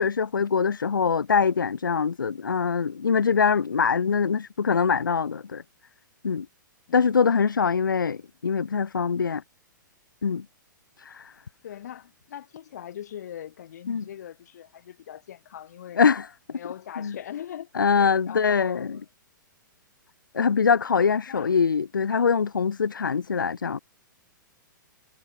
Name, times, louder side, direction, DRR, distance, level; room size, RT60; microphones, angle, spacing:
voice 1, 0.0-5.6 6.2-6.5 6.9-9.4 10.2-10.5 11.0-11.3 13.9-14.0 16.0-16.3 17.0-17.1 17.7-18.9 20.3-23.8, left 6 dB, 75° left, 0.5 m, -23 dB
voice 2, 11.6-16.0 16.5-17.7 18.0-19.0 21.3-21.5, left 10 dB, 55° left, 4.8 m, -40 dB
figure-of-eight pair, 110°, 11 cm